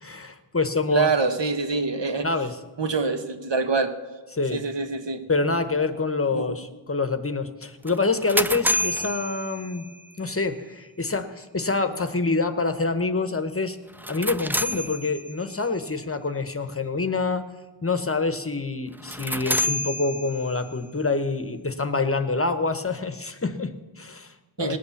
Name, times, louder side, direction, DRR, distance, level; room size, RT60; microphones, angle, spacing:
voice 1, 0.0-1.1 2.2-2.6 4.3-4.7 5.3-9.9 10.2-13.8 14.1-17.4 17.8-24.8, left 3 dB, 30° left, 10 dB, 0.9 m, -26 dB
voice 2, 0.9-2.3 2.8-3.9 4.5-5.2 6.3-6.6 24.6-24.8, right 4 dB, 65° right, 7 dB, 1.4 m, -25 dB
sound 1, 7.9-10.1 13.9-15.6 18.9-20.7, equal, 5° right, 0.3 m, -29 dB
19.0 x 8.3 x 7.1 m, 1.3 s
wide cardioid pair, 105°, 46 cm